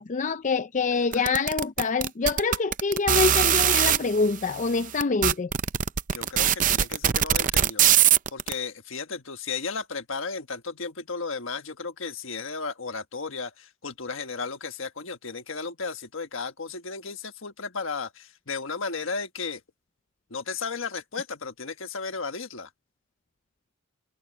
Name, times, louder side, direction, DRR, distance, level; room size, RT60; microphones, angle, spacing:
voice 1, 0.0-5.5, left 4 dB, 40° left, 0.5 m, -25 dB
sound 1, 1.1-4.0 4.7-4.8 5.0-8.5, right 10 dB, 40° right, 0.6 m, -21 dB
voice 2, 6.1-7.9 8.3-19.6 20.3-22.7, left 4 dB, 70° left, 1.5 m, -34 dB
head